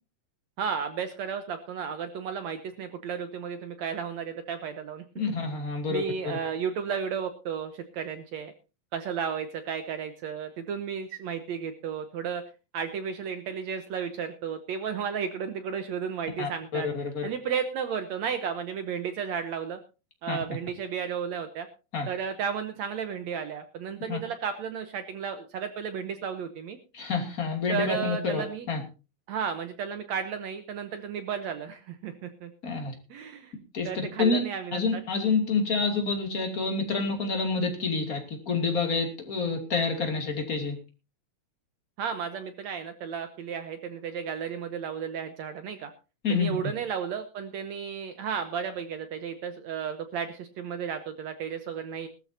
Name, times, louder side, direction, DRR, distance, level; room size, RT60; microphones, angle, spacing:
voice 1, 0.6-5.0 5.9-8.5 8.9-12.4 12.7-16.9 17.2-19.8 20.2-21.7 22.1-26.8 27.7-28.7 29.3-32.5 33.1-33.5 33.9-35.0 42.0-45.9 46.3-52.1, right 7 dB, 70° right, 9 dB, 2.0 m, -33 dB
voice 2, 5.2-6.0 16.4-17.3 20.3-20.4 21.9-22.1 24.1-24.2 26.9-28.8 32.6-32.9 33.7-33.9 34.2-34.4 34.7-40.8 46.2-46.5, left 4 dB, 30° left, 3 dB, 2.7 m, -28 dB
19.5 x 13.5 x 2.7 m, 0.31 s
omnidirectional pair, 3.7 m